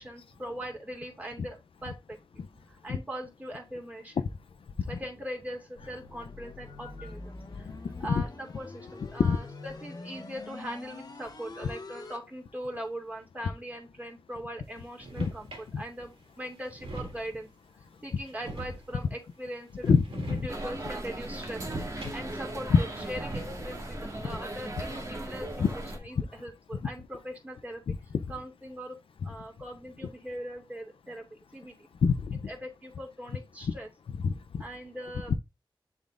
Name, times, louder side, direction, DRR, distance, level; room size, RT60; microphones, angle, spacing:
voice 1, 0.0-2.2 2.7-4.1 4.9-7.7 8.0-15.5 15.8-17.5 18.0-19.9 20.3-27.8 28.3-29.0 29.2-31.9 32.5-33.9 34.6-35.3, equal, 15° right, 2.6 m, -41 dB
sound 1, 5.8-12.2, left 3 dB, 45° left, 1.1 m, -45 dB
sound 2, 14.8-15.7 16.2-16.3 16.5-17.5 18.2-19.2 19.8-20.7 21.1-22.5 22.8-23.8, right 2 dB, 70° right, 2.1 m, -42 dB
voice 2, 19.9-20.4 22.7-22.8 25.6-25.7 27.9-28.0 32.0-32.4 34.2-34.3, left 5 dB, 75° left, 0.5 m, -24 dB
sound 3, 20.5-26.0, right 1 dB, 35° right, 1.7 m, -38 dB
10.5 x 3.9 x 2.5 m
wide cardioid pair, 120°, 9 cm